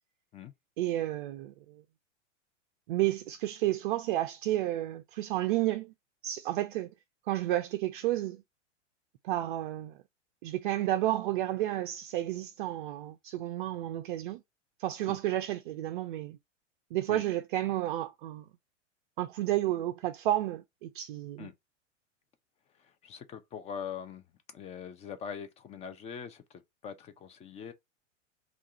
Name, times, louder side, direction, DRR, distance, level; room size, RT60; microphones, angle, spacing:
voice 1, 0.8-1.8 2.9-5.9 6.2-6.9 7.3-8.4 9.2-10.0 10.4-14.4 14.8-16.4 16.9-18.5 19.2-21.5, right 14 dB, 45° right, 0.5 m, -31 dB
voice 2, 22.7-27.7, left 7 dB, 20° left, 0.5 m, -43 dB
3.6 x 2.4 x 4.0 m
figure-of-eight pair, 100°, 37 cm